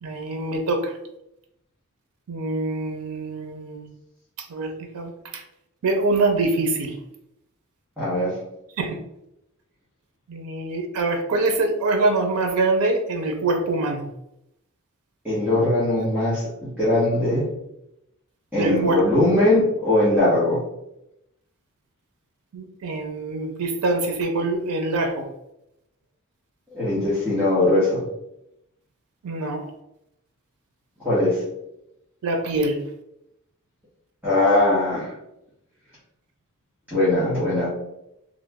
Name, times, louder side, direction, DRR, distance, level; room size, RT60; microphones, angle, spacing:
voice 1, 0.0-0.9 2.3-3.9 4.5-5.4 5.8-6.9 8.8-9.0 10.3-14.0 18.6-19.0 22.5-25.3 29.2-29.7 32.2-32.8, right 2 dB, 90° right, 5 dB, 0.5 m, -24 dB
voice 2, 8.0-8.4 15.2-16.5 16.8-17.5 18.5-20.6 26.7-28.0 31.0-31.4 34.2-35.1 36.9-37.7, left 1 dB, 5° right, -10 dB, 0.9 m, -20 dB
3.0 x 2.0 x 3.4 m, 0.83 s
head